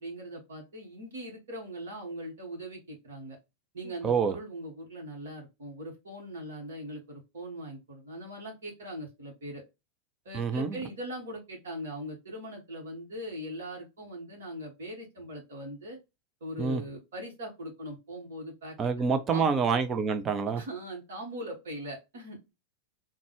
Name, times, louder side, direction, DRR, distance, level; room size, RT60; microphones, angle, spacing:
voice 1, 0.0-3.4 3.7-9.6 10.2-16.0 16.4-19.5 20.6-22.4, equal, 60° right, 1.2 m, -41 dB
voice 2, 4.0-4.3 10.3-10.8 16.6-16.8 18.8-20.6, right 5 dB, 25° right, 0.5 m, -27 dB
3.8 x 2.2 x 3.0 m
figure-of-eight pair, 90°, 0 cm